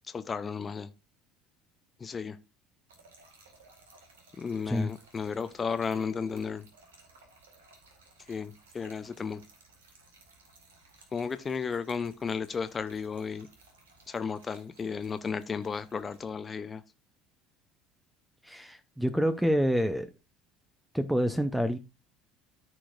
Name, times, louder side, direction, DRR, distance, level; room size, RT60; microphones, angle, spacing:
voice 1, 0.1-0.9 2.0-2.4 4.4-6.7 8.3-9.4 11.1-13.5 14.1-16.8, left 5 dB, 30° left, 0.7 m, -34 dB
Trickle dribble / Fill (with liquid), 2.9-16.3, right 3 dB, 80° right, 1.9 m, -59 dB
voice 2, 18.4-20.1 20.9-21.8, equal, 5° right, 0.8 m, -27 dB
14.0 x 4.7 x 2.5 m
hypercardioid pair, 65°, 0 cm